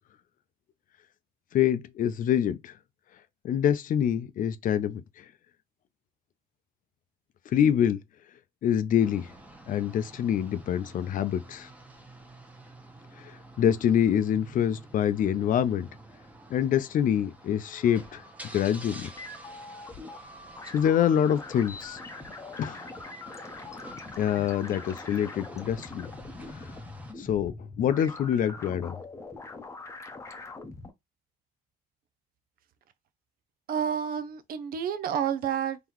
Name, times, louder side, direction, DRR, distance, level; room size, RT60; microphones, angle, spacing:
voice 1, 1.5-2.7 3.4-5.2 7.5-8.0 8.6-9.3 9.7-11.7 13.2-13.3 13.6-15.9 16.5-18.2 18.5-19.1 20.7-22.0 22.6-22.8 24.2-26.1 27.2-28.9, left 9 dB, 55° left, 0.6 m, -25 dB
sound 1, 9.0-27.1, right 1 dB, 10° right, 1.0 m, -49 dB
sound 2, 17.7-30.9, left 3 dB, 15° left, 0.8 m, -43 dB
voice 2, 33.7-35.8, right 8 dB, 60° right, 0.6 m, -29 dB
3.9 x 2.9 x 3.0 m
cardioid pair, 110°, 17 cm